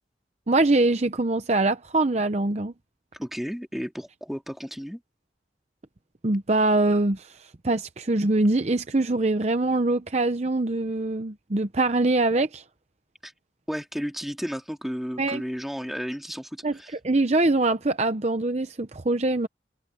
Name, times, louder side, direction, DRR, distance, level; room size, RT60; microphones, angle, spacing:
voice 1, 0.5-2.7 6.2-12.6 15.2-15.4 16.6-16.8 17.0-19.5, right 2 dB, 35° right, 0.7 m, -23 dB
voice 2, 3.1-5.0 13.2-13.3 13.7-16.9, equal, ahead, 2.2 m, -33 dB
head